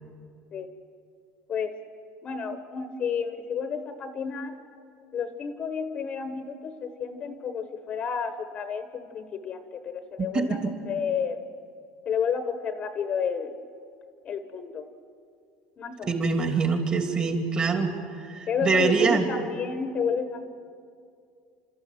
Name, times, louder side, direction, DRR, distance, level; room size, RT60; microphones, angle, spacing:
voice 1, 2.2-4.5 5.1-10.6 10.9-11.4 12.0-13.5 14.2-14.8 15.8-16.2 18.5-20.5, left 6 dB, 35° left, 9 dB, 1.2 m, -31 dB
voice 2, 10.2-10.7 16.1-17.9 18.2-19.3, right 4 dB, 30° right, 4 dB, 2.9 m, -24 dB
29.0 x 13.5 x 9.3 m, 2.4 s
cardioid pair, 140°, 4 cm